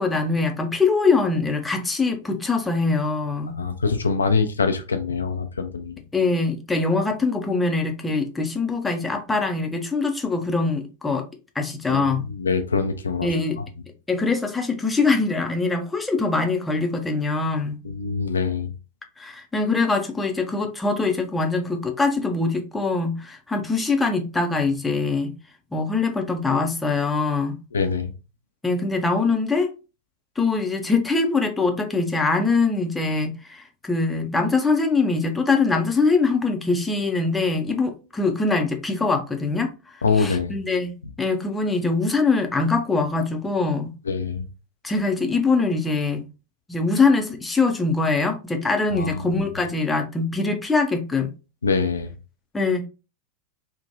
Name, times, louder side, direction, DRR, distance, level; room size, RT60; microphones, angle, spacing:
voice 1, 0.0-3.6 6.1-11.3 11.6-12.2 13.2-13.6 14.1-17.8 19.2-25.3 25.7-27.6 28.6-29.7 30.4-43.9 44.8-46.2 46.7-51.3 52.5-52.9, left 3 dB, 10° left, 0.5 m, -23 dB
voice 2, 3.6-5.9 11.9-13.3 17.8-18.7 27.7-28.1 40.0-40.6 44.1-44.5 48.9-49.2 51.6-52.1, left 4 dB, 75° left, 0.3 m, -24 dB
3.0 x 2.1 x 2.6 m
figure-of-eight pair, 90°, 0 cm